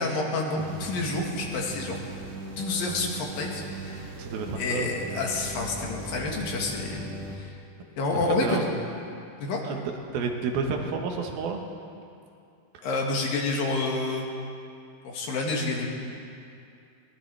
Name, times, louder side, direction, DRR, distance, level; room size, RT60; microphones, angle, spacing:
voice 1, 0.0-2.0 2.6-4.1 4.6-7.1 7.4-7.5 8.0-8.6 9.4-9.6 12.8-14.3 15.1-15.9, left 3 dB, 75° left, -1 dB, 3.5 m, -29 dB
sound 1, 0.6-7.4, right 2 dB, 60° right, 3.0 m, -39 dB
voice 2, 4.1-4.9 8.3-8.6 9.6-11.6 12.7-12.8, right 5 dB, 85° right, 3 dB, 3.2 m, -30 dB
22.0 x 18.5 x 3.4 m, 2.5 s
omnidirectional pair, 4.1 m